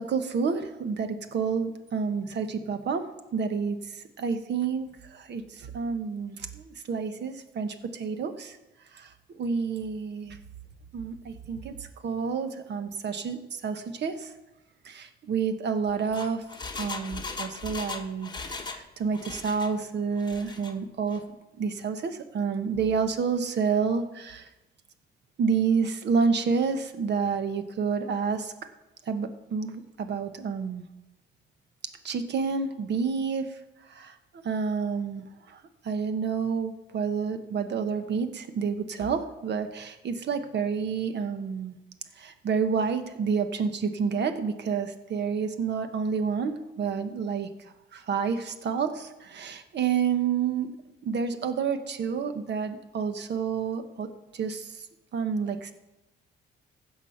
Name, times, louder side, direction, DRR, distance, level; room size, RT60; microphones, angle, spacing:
voice 1, 0.0-8.6 8.9-10.4 10.9-14.3 14.8-16.4 16.8-21.2 21.6-24.5 25.4-28.5 29.0-30.8 32.0-33.6 33.9-34.2 34.4-41.8 42.2-50.7 51.0-54.9 55.1-55.7, right 6 dB, 60° right, 8 dB, 1.3 m, -29 dB
Engine, 15.9-18.9 19.1-19.7 20.2-20.7 21.1-21.2, left 4 dB, 20° left, 1.2 m, -38 dB
15.5 x 6.2 x 5.8 m, 1.0 s
cardioid pair, 90°, 20 cm